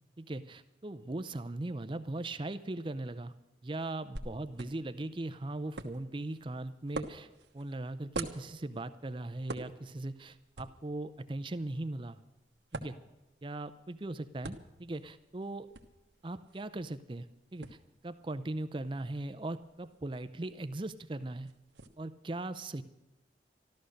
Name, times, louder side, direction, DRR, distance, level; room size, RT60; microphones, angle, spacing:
voice 1, 0.2-3.3 3.6-7.3 7.5-12.2 12.7-13.0 13.4-15.7 16.2-17.3 17.5-17.8 18.0-21.5 22.0-22.8, right 2 dB, 25° right, 12 dB, 0.5 m, -39 dB
sound 1, 4.2-21.9, right 3 dB, 85° right, 1.2 m, -48 dB
13.5 x 13.0 x 6.4 m, 0.98 s
head